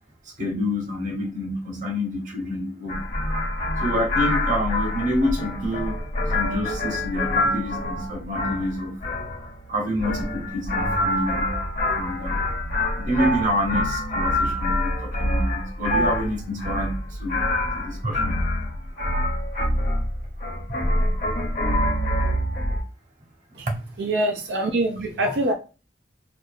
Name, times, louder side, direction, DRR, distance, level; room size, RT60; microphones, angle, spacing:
voice 1, 0.4-3.0 3.8-6.0 6.3-8.9 9.7-11.4 11.9-12.4 13.0-17.4 17.7-18.4 21.3-21.5 23.7-23.8 24.6-24.7 25.2-25.3, left 1 dB, 45° right, 1.0 m, -27 dB
sound 1, 2.9-22.8, left 1 dB, 50° left, 0.9 m, -26 dB
voice 2, 24.0-25.5, right 1 dB, 85° right, 0.5 m, -24 dB
4.4 x 2.4 x 2.4 m
head